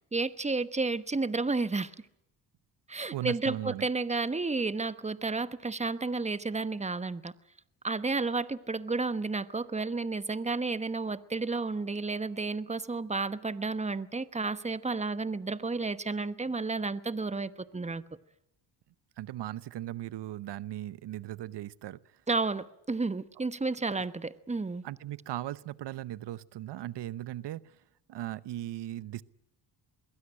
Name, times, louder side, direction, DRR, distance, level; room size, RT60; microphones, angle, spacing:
voice 1, 0.0-1.9 2.9-7.3 7.8-18.0 22.3-24.8, right 3 dB, 15° right, 1.1 m, -32 dB
voice 2, 3.1-3.9 19.2-22.0 23.9-24.0 24.8-27.7 28.1-29.2, right 13 dB, 60° right, 0.9 m, -38 dB
22.0 x 16.5 x 9.9 m
supercardioid pair, 65°, 47 cm